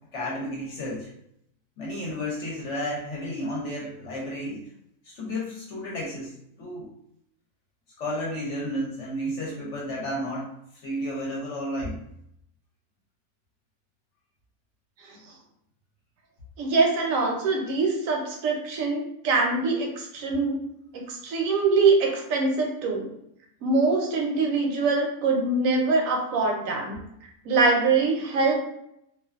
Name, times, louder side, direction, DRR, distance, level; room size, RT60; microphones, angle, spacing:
voice 1, 0.1-1.1 1.8-4.6 5.0-6.9 8.0-12.0, equal, 60° left, -4 dB, 0.9 m, -32 dB
voice 2, 16.6-20.6 21.1-23.1 23.6-27.0 27.5-28.6, right 3 dB, 70° right, 1 dB, 0.9 m, -23 dB
2.5 x 2.2 x 2.3 m, 0.76 s
omnidirectional pair, 1.6 m